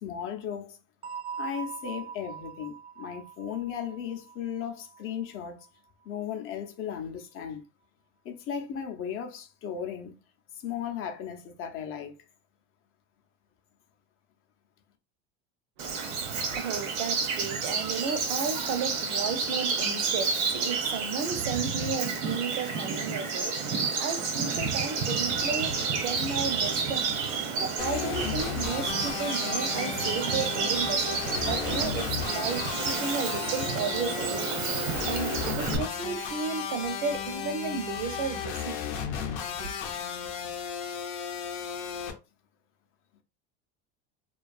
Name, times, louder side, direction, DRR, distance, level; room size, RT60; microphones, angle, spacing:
voice 1, 0.0-0.8 1.4-5.6 6.1-7.6 8.2-10.1 10.5-12.2, left 8 dB, 40° left, 0.5 m, -36 dB
sound 1, 1.0-5.7, right 6 dB, 20° right, 0.4 m, -42 dB
voice 2, 15.8-27.2 27.6-38.8 39.5-39.7, right 6 dB, 65° right, 0.6 m, -34 dB
Bird vocalization bird call bird song, 15.8-35.8, right 5 dB, 90° right, 1.0 m, -30 dB
sound 2, 27.8-42.1, left 7 dB, 90° left, 0.7 m, -34 dB
2.6 x 2.3 x 2.3 m
supercardioid pair, 140°, 34 cm